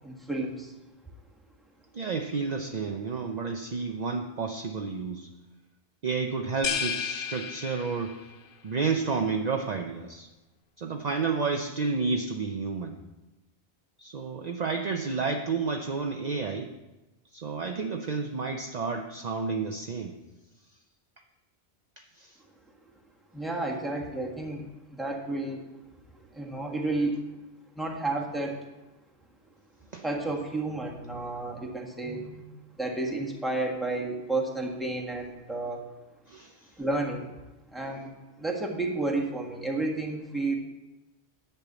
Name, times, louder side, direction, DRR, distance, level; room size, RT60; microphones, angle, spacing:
voice 1, 0.0-0.7 23.3-25.7 26.3-27.2 27.7-28.6 30.0-32.4 32.8-35.8 36.8-37.3 37.7-38.1 38.4-40.6, right 2 dB, ahead, -1 dB, 1.5 m, -31 dB
voice 2, 1.9-5.3 6.0-8.2 8.6-10.3 10.8-13.0 14.0-16.7 17.3-20.1 22.0-22.4 29.9-30.0 36.3-36.7, right 4 dB, 45° right, 4 dB, 0.7 m, -31 dB
sound 1, 6.6-8.3, left 7 dB, 60° left, 0.9 m, -32 dB
10.5 x 5.7 x 8.0 m, 1.1 s
omnidirectional pair, 1.1 m